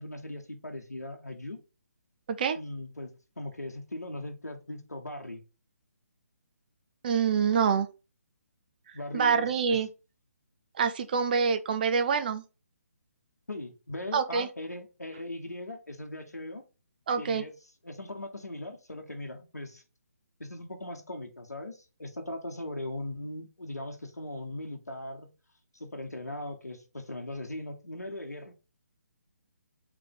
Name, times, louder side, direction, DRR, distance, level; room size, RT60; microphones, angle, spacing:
voice 1, 0.0-1.6 2.6-5.4 8.9-9.8 13.5-16.6 17.2-17.5 17.8-19.8 20.4-25.3 25.7-28.5, left 1 dB, 85° left, 0.9 m, -39 dB
voice 2, 7.0-7.9 9.1-9.9 10.8-12.4 14.1-14.5 17.1-17.4, right 6 dB, 35° right, 0.5 m, -26 dB
3.3 x 3.3 x 3.8 m
figure-of-eight pair, 140°, 8 cm